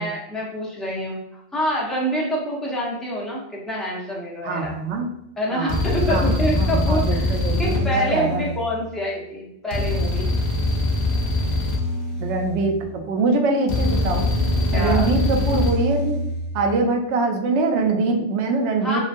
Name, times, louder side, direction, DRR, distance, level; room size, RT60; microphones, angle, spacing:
voice 1, 0.0-4.7 5.4-10.3 14.7-15.1 18.8-19.0, equal, ahead, -5 dB, 0.5 m, -26 dB
voice 2, 4.4-5.1 5.5-5.8 6.1-8.5 12.2-12.8 13.1-14.3 14.7-16.2 16.5-19.0, right 3 dB, 80° right, 3 dB, 0.9 m, -23 dB
sound 1, 4.6-4.9 5.7-9.0 9.7-13.0 13.7-16.6, left 2 dB, 70° left, 0.9 m, -23 dB
3.0 x 2.4 x 2.5 m, 0.80 s
omnidirectional pair, 1.1 m